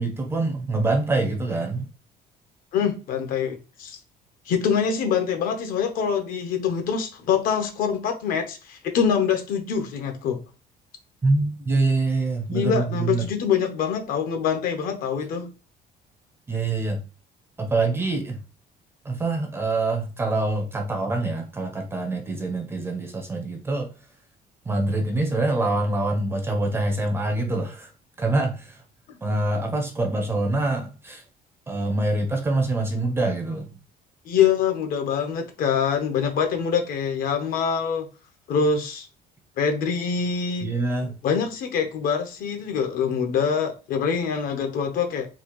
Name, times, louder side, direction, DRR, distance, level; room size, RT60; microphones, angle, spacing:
voice 1, 0.0-1.9 11.2-13.2 16.5-17.0 17.6-18.4 19.0-23.9 24.7-27.9 28.2-28.8 29.2-31.2 31.7-33.7 40.6-41.1, right 2 dB, 15° right, 0.5 m, -25 dB
voice 2, 2.7-4.0 4.5-10.4 12.5-15.5 34.3-38.1 38.5-39.1 39.6-40.7 41.2-45.3, left 7 dB, 60° left, 0.8 m, -24 dB
3.9 x 2.3 x 3.0 m
cardioid pair, 175°, 16 cm